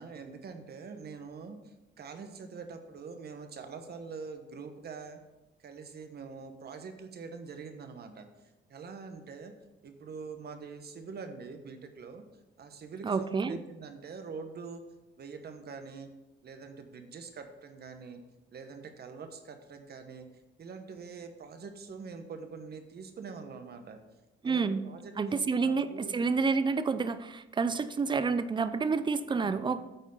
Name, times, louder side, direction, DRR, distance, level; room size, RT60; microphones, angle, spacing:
voice 1, 0.0-5.2 5.6-8.2 8.7-9.5 9.8-12.2 12.6-14.8 15.2-16.1 16.4-18.2 18.5-20.3 20.6-24.0 24.4-26.2 29.3-29.8, right 5 dB, 55° right, 7 dB, 1.1 m, -44 dB
voice 2, 13.0-13.6 24.4-24.8 25.2-29.8, right 4 dB, 25° right, 13 dB, 0.5 m, -29 dB
9.1 x 4.2 x 5.5 m, 1.0 s
cardioid pair, 90°, 20 cm